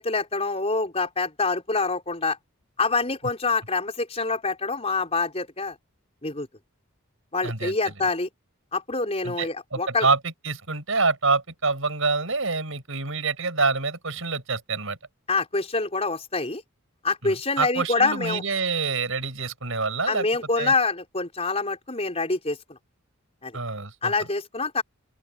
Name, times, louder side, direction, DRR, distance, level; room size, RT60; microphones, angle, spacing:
voice 1, 0.0-2.4 2.8-5.7 6.2-6.5 7.3-8.3 8.7-10.1 15.3-16.6 17.0-18.4 20.1-22.8 23.4-23.6 24.0-24.8, left 3 dB, 30° left, 5.0 m, -26 dB
voice 2, 7.4-7.7 9.2-15.0 17.2-20.3 20.6-20.7 23.5-24.1, right 4 dB, 70° right, 7.0 m, -26 dB
open air
head